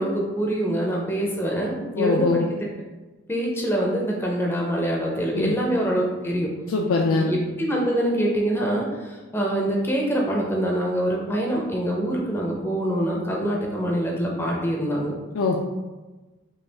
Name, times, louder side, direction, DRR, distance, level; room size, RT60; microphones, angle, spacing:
voice 1, 0.0-2.4 3.3-6.5 7.1-15.1, right 1 dB, 10° left, -1 dB, 0.4 m, -25 dB
voice 2, 2.0-2.4 5.3-5.5 6.7-7.3 15.3-15.6, left 3 dB, 80° left, 0 dB, 0.4 m, -22 dB
5.2 x 2.3 x 3.4 m, 1.2 s
head